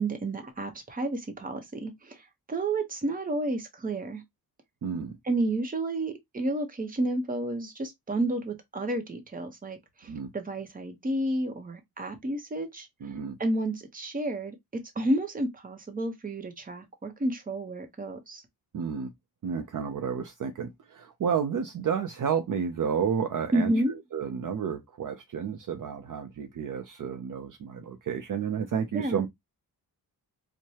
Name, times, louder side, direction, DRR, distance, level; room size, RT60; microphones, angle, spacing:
voice 1, 0.0-4.2 5.2-12.9 13.4-18.4 23.5-23.9 28.9-29.2, right 1 dB, 20° right, 0.8 m, -31 dB
voice 2, 4.8-5.2 10.1-10.3 13.0-13.4 18.7-19.1 19.4-29.3, right 7 dB, 55° right, 0.6 m, -31 dB
4.6 x 2.2 x 2.8 m
wide cardioid pair, 155°, 38 cm